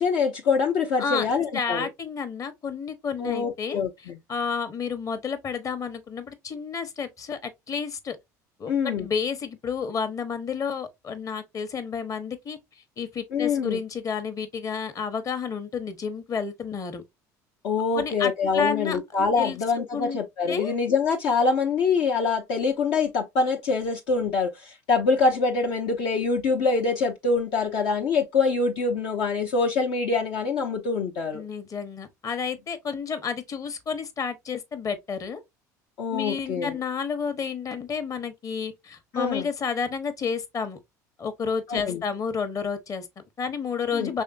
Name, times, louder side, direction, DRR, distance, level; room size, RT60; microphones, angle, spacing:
voice 1, 0.0-1.9 3.2-4.2 8.7-9.1 13.3-13.8 17.6-31.4 36.0-36.8 39.1-39.5 41.7-42.0 43.9-44.1, left 4 dB, 60° left, 0.8 m, -25 dB
voice 2, 1.0-8.2 8.6-12.6 13.0-17.0 17.9-19.0 19.4-19.6 19.9-20.2 20.5-20.7 31.3-35.4 36.1-40.8 41.2-44.2, left 6 dB, 35° left, 1.1 m, -31 dB
5.5 x 3.4 x 2.5 m
hypercardioid pair, 65°, 9 cm